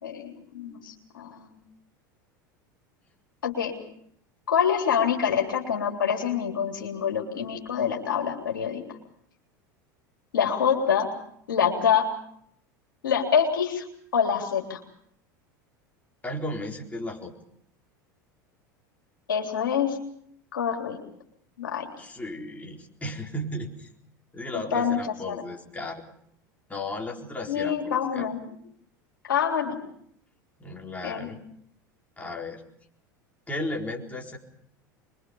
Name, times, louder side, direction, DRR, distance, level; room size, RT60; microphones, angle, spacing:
voice 1, 0.0-1.5 3.4-3.7 4.5-9.0 10.3-11.1 11.5-12.1 13.0-13.9 14.1-14.8 19.3-20.0 20.5-21.0 21.6-21.9 24.5-25.0 25.3-25.4 27.5-28.4 29.2-29.8 31.0-31.3, left 7 dB, 85° left, 1 dB, 3.6 m, -26 dB
voice 2, 16.2-17.3 22.0-23.9 24.3-26.0 26.7-28.3 30.6-31.4 32.2-32.6 33.5-34.4, left 1 dB, 15° left, 0 dB, 4.2 m, -35 dB
25.5 x 23.0 x 5.5 m, 0.67 s
hypercardioid pair, 85°, 11 cm